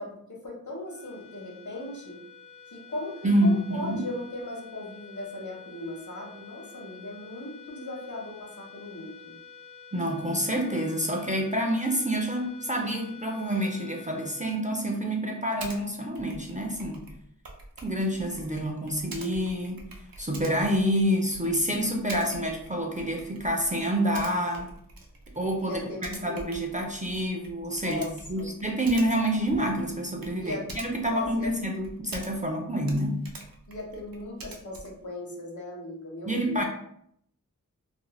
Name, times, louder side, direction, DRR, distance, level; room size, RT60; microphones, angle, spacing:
voice 1, 0.0-2.2 2.7-9.3 25.6-26.4 27.8-28.5 30.4-30.7 31.1-31.5 33.7-36.6, left 1 dB, 60° left, -2 dB, 0.9 m, -38 dB
sound 1, 0.8-15.4, left 6 dB, 40° left, 0.4 m, -49 dB
voice 2, 3.2-4.0 9.9-17.1 17.8-19.9 20.2-24.7 25.4-28.0 28.3-33.2 36.3-36.6, equal, 25° right, 1 dB, 0.4 m, -28 dB
Typing, 15.6-15.8 16.1-32.6 32.8-35.1, right 2 dB, 85° right, 0.5 m, -46 dB
2.5 x 2.0 x 3.0 m, 0.71 s
wide cardioid pair, 45°, 34 cm